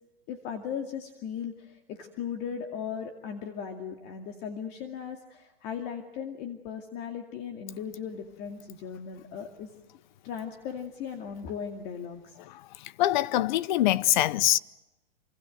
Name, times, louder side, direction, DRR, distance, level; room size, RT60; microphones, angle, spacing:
voice 1, 0.3-9.7 10.2-12.4, left 7 dB, 35° left, 2.4 m, -37 dB
voice 2, 13.0-14.6, left 14 dB, 50° left, 0.9 m, -23 dB
27.0 x 25.5 x 7.7 m
hypercardioid pair, 150°, 30 cm